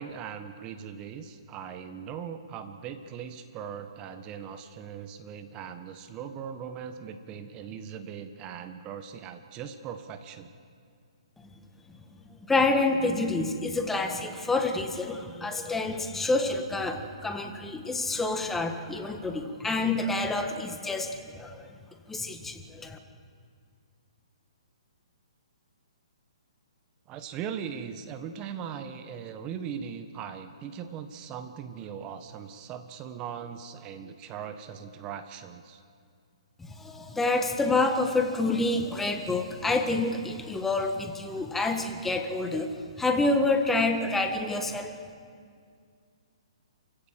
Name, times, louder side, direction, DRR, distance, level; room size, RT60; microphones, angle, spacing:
voice 1, 0.0-10.5 27.1-35.8, right 7 dB, 25° right, 8 dB, 1.4 m, -39 dB
voice 2, 12.5-21.7 22.1-23.0 36.6-45.0, left 2 dB, 5° left, 5 dB, 1.6 m, -28 dB
29.5 x 16.0 x 7.6 m, 2.3 s
hypercardioid pair, 140°, 3 cm